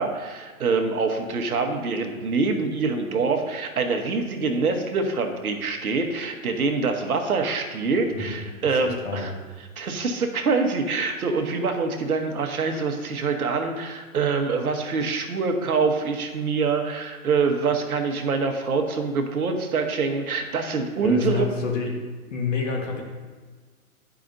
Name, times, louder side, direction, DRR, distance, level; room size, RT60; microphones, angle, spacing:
voice 1, 0.0-9.3 9.8-21.5, right 4 dB, 75° right, 4 dB, 1.1 m, -25 dB
voice 2, 8.7-9.4 21.0-22.0 22.3-23.0, left 4 dB, 55° left, 1 dB, 1.5 m, -28 dB
10.5 x 4.9 x 2.6 m, 1.4 s
hypercardioid pair, 160°, 44 cm